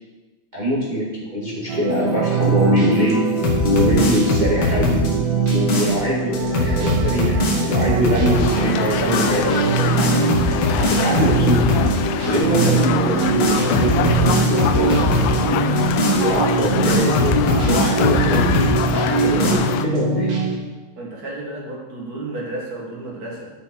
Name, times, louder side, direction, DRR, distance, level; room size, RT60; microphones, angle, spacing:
voice 1, 0.5-3.2 3.6-5.0 5.5-10.1 10.6-11.6 12.2-15.6 16.1-20.3, equal, 30° right, -6 dB, 0.8 m, -23 dB
sound 1, 1.7-20.6, right 4 dB, 85° right, 3.6 m, -22 dB
sound 2, 3.4-6.0 6.3-8.5 8.9-9.4 9.8-12.0 12.3-12.8 13.2-15.4 15.8-18.8 19.2-19.5, left 2 dB, 50° left, 1.7 m, -21 dB
sound 3, 8.3-19.9, left 11 dB, 85° left, 2.3 m, -25 dB
voice 2, 21.0-23.5, right 2 dB, 45° right, -2 dB, 1.2 m, -32 dB
12.5 x 6.1 x 4.4 m, 1.2 s
omnidirectional pair, 4.1 m